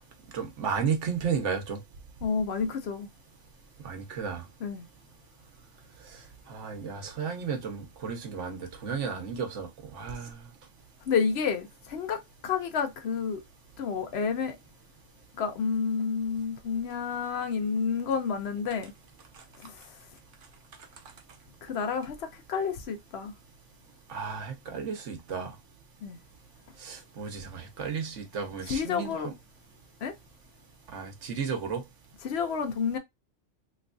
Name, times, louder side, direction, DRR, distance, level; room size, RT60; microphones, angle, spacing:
voice 1, 0.3-1.8 3.8-4.4 6.5-10.5 24.1-25.5 26.8-29.3 30.9-31.8, right 6 dB, 75° right, 1.2 m, -33 dB
voice 2, 2.2-3.1 4.6-4.8 11.1-13.4 13.8-14.6 15.4-18.9 19.6-19.8 21.6-23.3 26.0-26.2 28.7-29.3 30.0-30.1 32.2-33.0, left 6 dB, 65° left, 0.8 m, -30 dB
3.4 x 3.1 x 2.4 m
omnidirectional pair, 1.3 m